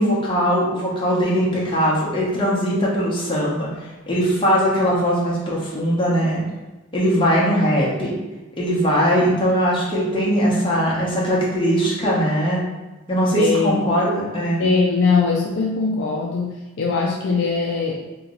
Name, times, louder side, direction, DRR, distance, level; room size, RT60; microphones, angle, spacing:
voice 1, 0.0-6.4 6.9-8.1 8.6-12.6 13.1-14.7, equal, 25° left, -6 dB, 0.9 m, -20 dB
voice 2, 13.4-13.8 14.6-18.0, left 4 dB, 55° left, -2 dB, 0.4 m, -21 dB
3.0 x 2.9 x 3.8 m, 1.1 s
head